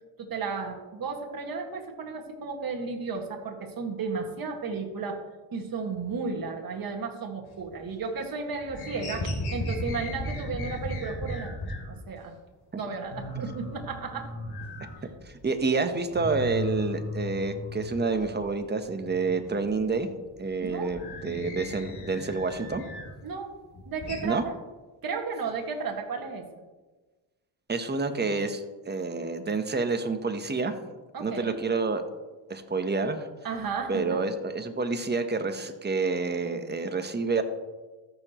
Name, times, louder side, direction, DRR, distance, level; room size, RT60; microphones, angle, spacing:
voice 1, 0.2-5.3 5.5-12.3 12.8-14.3 20.6-21.0 23.2-23.6 23.9-24.5 25.0-26.4 31.1-31.6 33.4-34.2, right 4 dB, 45° right, 2 dB, 1.9 m, -34 dB
sound 1, 7.5-8.2 8.5-11.9 12.4-12.5 12.8-12.9 13.1-15.6 15.8-18.4 18.8-23.2 23.6-24.2, left 1 dB, 55° left, 2.9 m, -36 dB
voice 2, 15.4-20.1 20.4-22.8 24.2-24.4 27.7-30.7 31.2-32.0 32.5-33.3 33.9-37.4, right 4 dB, 20° right, 8 dB, 1.0 m, -28 dB
14.0 x 6.9 x 3.0 m, 1.2 s
cardioid pair, 85°, 48 cm